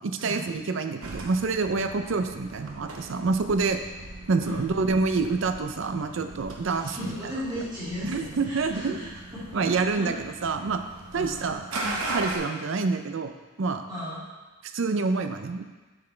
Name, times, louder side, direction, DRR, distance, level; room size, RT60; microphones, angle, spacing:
voice 1, 0.0-3.8 4.3-7.0 8.0-9.0 9.5-10.8 11.1-11.6 12.1-13.9 14.6-15.6, right 4 dB, 60° right, 7 dB, 0.5 m, -27 dB
sound 1, 1.0-12.4, right 2 dB, 85° right, 1.0 m, -39 dB
voice 2, 4.4-4.7 6.8-10.1 11.1-11.3 13.9-14.2, equal, 20° right, -12 dB, 2.4 m, -36 dB
7.6 x 5.9 x 3.3 m, 1.2 s
head